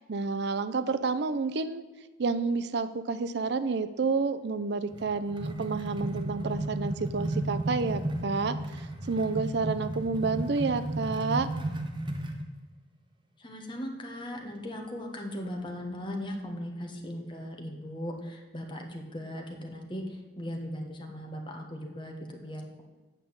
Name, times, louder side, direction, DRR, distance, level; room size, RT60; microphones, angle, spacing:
voice 1, 0.0-1.8 2.2-11.5, right 4 dB, 60° right, 12 dB, 0.5 m, -30 dB
sound 1, 4.9-12.4, right 1 dB, 25° right, 1.0 m, -34 dB
voice 2, 13.4-22.8, equal, 25° left, 2 dB, 1.4 m, -38 dB
8.3 x 5.4 x 7.8 m, 1.3 s
head